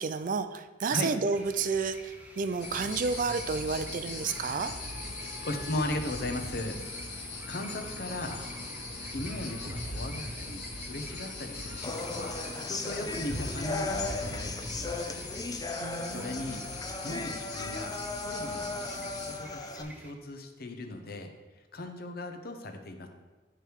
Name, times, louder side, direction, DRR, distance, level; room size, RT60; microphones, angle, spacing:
voice 1, 0.0-4.7 15.8-16.6, right 4 dB, 50° right, 11 dB, 0.4 m, -31 dB
sound 1, 1.2-20.1, equal, 10° right, 0.7 m, -50 dB
sound 2, 2.6-19.4, left 2 dB, 85° left, 1.4 m, -39 dB
voice 2, 5.4-6.8 7.5-8.4 9.1-12.4 12.7-15.3 16.1-16.7 17.0-18.0 18.2-21.3 21.7-23.1, left 1 dB, 60° left, 5 dB, 0.8 m, -37 dB
sound 3, 11.8-19.8, left 3 dB, 20° left, 0.5 m, -37 dB
9.7 x 3.4 x 4.6 m, 1.2 s
head